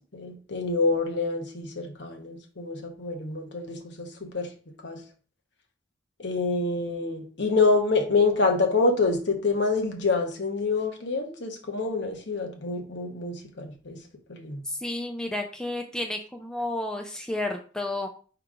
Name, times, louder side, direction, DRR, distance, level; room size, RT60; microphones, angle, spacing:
voice 1, 0.1-4.5 4.8-5.0 6.2-14.0 14.3-14.6, left 3 dB, 65° left, 4 dB, 0.8 m, -26 dB
voice 2, 14.6-18.1, left 2 dB, 5° left, 3 dB, 0.3 m, -31 dB
4.8 x 2.9 x 3.6 m, 0.41 s
head